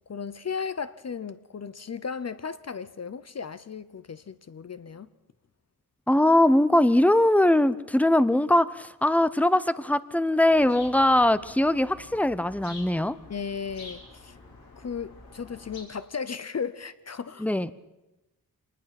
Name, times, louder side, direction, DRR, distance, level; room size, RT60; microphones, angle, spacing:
voice 1, 0.1-5.1 13.3-14.4 14.8-17.5, left 6 dB, 45° left, 0.7 m, -35 dB
voice 2, 6.1-13.2 17.4-17.7, left 1 dB, 5° left, 0.6 m, -21 dB
sound 1, 10.5-15.8, left 3 dB, 75° left, 5.6 m, -48 dB
25.5 x 19.5 x 5.9 m
wide cardioid pair, 135°, 37 cm